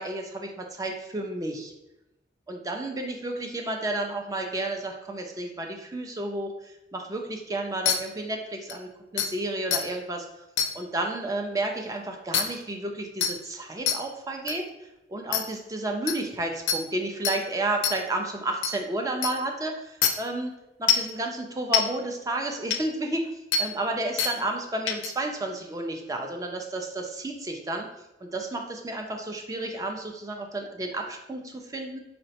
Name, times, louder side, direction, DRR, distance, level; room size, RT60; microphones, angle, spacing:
voice 1, 0.0-1.7 2.5-10.3 10.7-14.6 15.1-20.5 20.8-23.3 23.6-27.9 28.2-32.0, right 2 dB, 20° right, 3 dB, 0.4 m, -31 dB
sound 1, 7.9-8.0 8.7-8.8 9.2-9.3 9.7-9.8 10.6-10.7 12.3-12.4 13.2-13.3 13.9-14.0 14.5-14.6 15.3-15.4 16.1-16.2 16.7-16.8 17.2-17.4 17.8-17.9 18.6-18.7 19.2-19.3 20.0-20.1 20.9-21.1 21.7-21.8 22.7-22.8 23.5-23.6 24.2-24.3 24.9-25.1, left 8 dB, 85° left, 0.4 m, -23 dB
4.1 x 2.1 x 2.7 m, 0.92 s
head